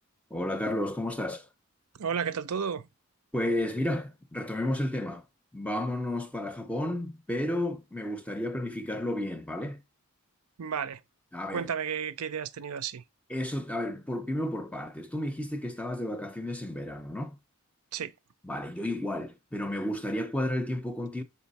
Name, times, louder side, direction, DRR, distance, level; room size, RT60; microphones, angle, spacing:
voice 1, 0.3-1.5 3.3-5.2 5.5-9.8 11.3-11.7 13.3-17.4 18.4-21.2, left 1 dB, 5° left, 0.5 m, -32 dB
voice 2, 2.0-2.9 10.6-11.0 11.5-13.0 17.9-18.1, right 7 dB, 80° right, 0.5 m, -32 dB
5.8 x 4.0 x 4.1 m
head